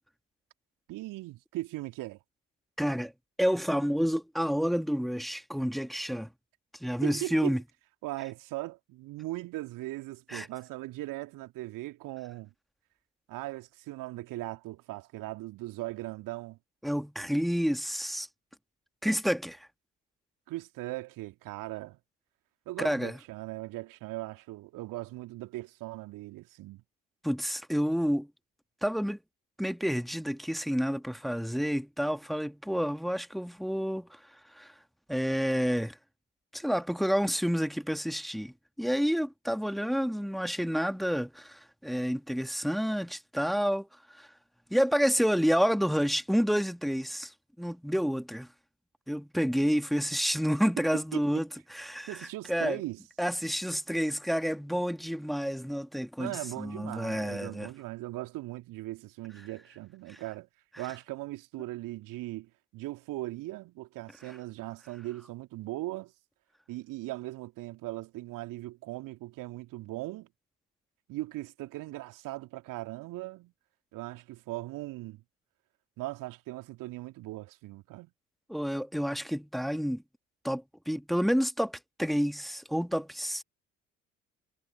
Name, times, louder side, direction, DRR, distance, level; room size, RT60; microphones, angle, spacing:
voice 1, 0.9-2.2 7.0-7.6 8.0-12.5 13.3-16.6 20.5-22.0 22.7-26.8 51.1-51.2 52.1-53.0 56.2-60.5 60.8-66.1 66.7-70.3 71.1-73.5 73.9-75.2 76.0-78.1, right 18 dB, 60° right, 2.6 m, -39 dB
voice 2, 2.8-3.1 3.4-6.3 6.8-7.6 10.3-10.5 16.8-18.3 19.0-19.7 22.8-23.2 27.2-28.3 28.8-29.2 29.6-34.7 35.1-36.0 36.5-44.3 44.7-48.5 49.1-52.8 53.2-56.3 56.6-57.7 60.1-60.2 64.2-64.4 78.5-80.0 80.4-83.4, equal, ahead, 2.2 m, -29 dB
figure-of-eight pair, 50°, 37 cm